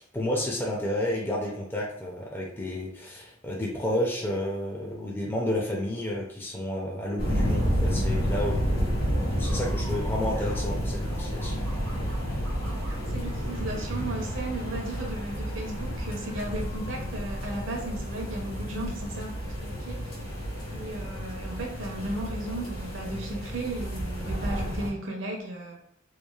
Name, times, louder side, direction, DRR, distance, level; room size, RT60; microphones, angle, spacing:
voice 1, 0.0-9.0 9.4-11.5, left 1 dB, 10° left, -3 dB, 0.4 m, -31 dB
sound 1, 7.0-19.0, right 1 dB, 85° right, 1.0 m, -44 dB
sound 2, 7.2-24.9, equal, 75° left, 1.1 m, -30 dB
voice 2, 13.1-20.2 20.7-25.8, right 1 dB, 70° right, 1 dB, 0.7 m, -35 dB
3.0 x 2.3 x 2.3 m, 0.77 s
head